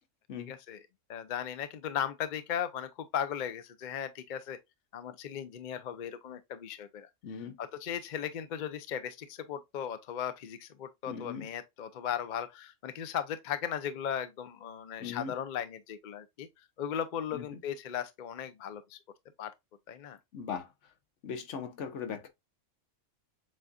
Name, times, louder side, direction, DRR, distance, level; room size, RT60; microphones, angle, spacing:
voice 1, 0.4-0.8 1.1-4.6 4.9-7.1 7.4-16.5 16.8-19.0 19.4-19.5 19.9-20.2, left 9 dB, 50° left, 0.6 m, -37 dB
voice 2, 7.2-7.5 11.1-11.5 15.0-15.4 17.3-17.6 20.3-20.7 21.2-22.3, left 6 dB, 70° left, 1.1 m, -39 dB
7.5 x 2.6 x 2.3 m
omnidirectional pair, 1.3 m